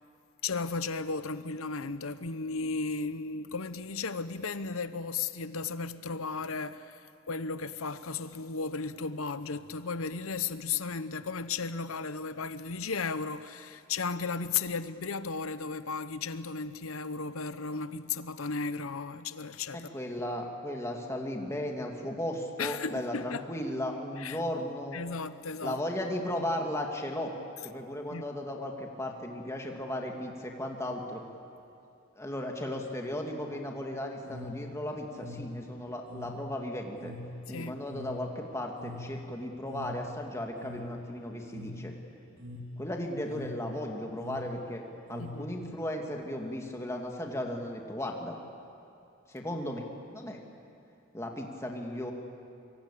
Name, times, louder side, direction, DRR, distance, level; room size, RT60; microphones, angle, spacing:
voice 1, 0.4-19.9 22.6-23.4 24.2-24.4 24.9-25.8 28.1-28.2 37.5-37.8 45.2-45.5, left 4 dB, 85° left, 0.9 m, -35 dB
voice 2, 19.7-25.0 25.6-27.3 27.6-31.2 32.2-37.1 37.5-41.9 42.8-48.4 49.3-50.4 51.1-52.1, left 1 dB, 15° left, 2.4 m, -36 dB
sound 1, 34.2-45.9, left 1 dB, 75° right, 2.9 m, -44 dB
25.0 x 23.5 x 8.6 m
head